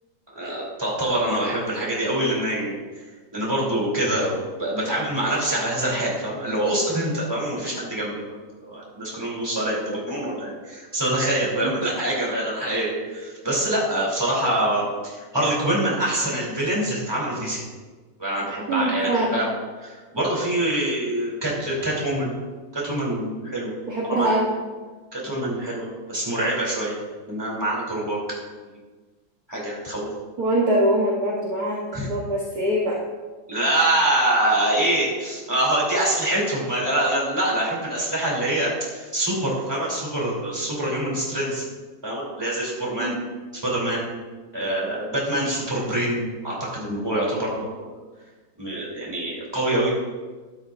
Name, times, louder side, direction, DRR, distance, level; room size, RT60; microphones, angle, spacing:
voice 1, 0.3-3.0 3.3-17.6 18.2-19.5 19.8-22.3 22.7-23.7 24.0-24.3 25.1-27.0 27.3-28.2 29.5-30.1 31.9-32.1 33.5-41.6 42.0-43.1 43.5-44.1 44.5-47.9 48.6-49.9, right 1 dB, 10° right, -5 dB, 3.0 m, -25 dB
voice 2, 18.7-19.4 23.9-24.6 30.4-31.8 32.1-33.0 43.0-43.2, right 1 dB, 55° right, -4 dB, 1.6 m, -23 dB
12.5 x 9.6 x 2.6 m, 1.3 s
omnidirectional pair, 2.1 m